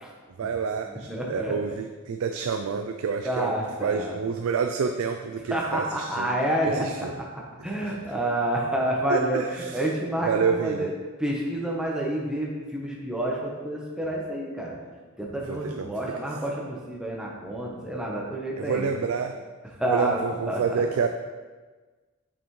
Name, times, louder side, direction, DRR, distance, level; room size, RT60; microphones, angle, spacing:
voice 1, 0.4-3.5 3.8-6.4 6.6-7.2 7.6-8.1 9.1-9.9 10.2-10.9 15.5-15.9 18.6-19.4 19.9-21.1, right 6 dB, 80° right, 6 dB, 0.4 m, -29 dB
voice 2, 1.1-1.5 3.2-4.1 5.5-6.9 7.2-7.3 7.6-10.9 11.2-14.7 15.2-18.9 19.8-20.6, right 1 dB, 5° right, -3 dB, 1.0 m, -28 dB
6.8 x 5.6 x 3.2 m, 1.3 s
head